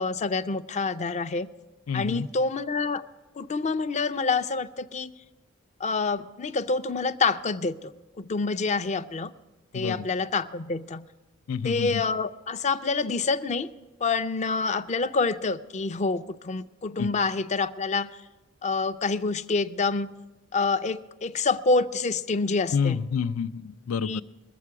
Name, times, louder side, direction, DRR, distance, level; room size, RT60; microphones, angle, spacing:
voice 1, 0.0-1.5 1.9-3.0 3.4-5.1 5.8-7.9 8.2-9.3 9.7-11.1 11.6-13.7 14.0-18.2 18.6-20.1 20.5-23.0 24.0-24.2, left 4 dB, 35° left, 12 dB, 0.4 m, -27 dB
voice 2, 1.9-2.3 9.7-10.0 11.5-12.0 17.0-17.1 22.7-24.2, left 6 dB, 90° left, 14 dB, 0.4 m, -28 dB
21.5 x 7.5 x 4.7 m, 1.2 s
head